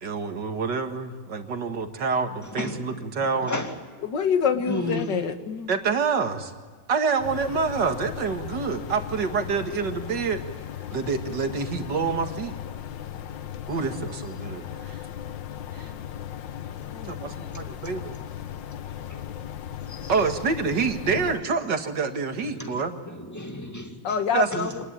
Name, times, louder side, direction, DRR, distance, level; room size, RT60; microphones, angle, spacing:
voice 1, 0.0-3.5 5.7-6.5 6.9-10.4 10.9-12.5 13.7-15.0 15.7-15.9 17.1-18.1 20.1-22.9 24.3-24.7, right 5 dB, 70° right, 6 dB, 2.4 m, -27 dB
voice 2, 2.4-3.8 4.7-5.2 17.2-17.6 19.1-19.2 19.9-20.1 21.1-21.3 22.4-24.9, left 2 dB, 10° left, 4 dB, 2.3 m, -34 dB
voice 3, 4.0-5.7 16.9-17.1 24.0-24.7, left 6 dB, 70° left, 8 dB, 2.2 m, -26 dB
sound 1, 7.2-21.4, left 10 dB, 85° left, 1.7 m, -37 dB
26.5 x 19.5 x 8.9 m, 1.4 s
omnidirectional pair, 2.0 m